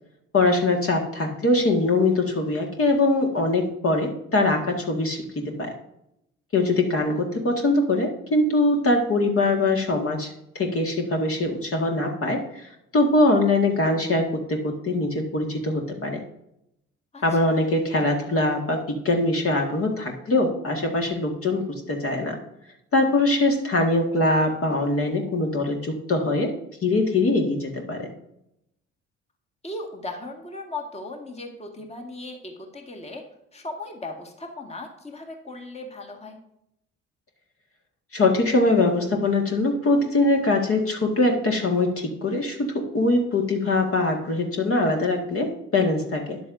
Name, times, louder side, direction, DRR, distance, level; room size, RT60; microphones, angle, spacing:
voice 1, 0.3-5.7 6.5-16.2 17.2-22.4 22.9-26.5 26.8-28.1 38.1-46.4, left 2 dB, 35° left, 2 dB, 1.8 m, -22 dB
voice 2, 17.1-17.6 21.5-21.6 27.2-27.4 29.6-33.2 33.5-36.4, left 2 dB, 15° left, 2 dB, 1.8 m, -37 dB
13.0 x 10.0 x 2.6 m, 0.80 s
figure-of-eight pair, 45°, 37 cm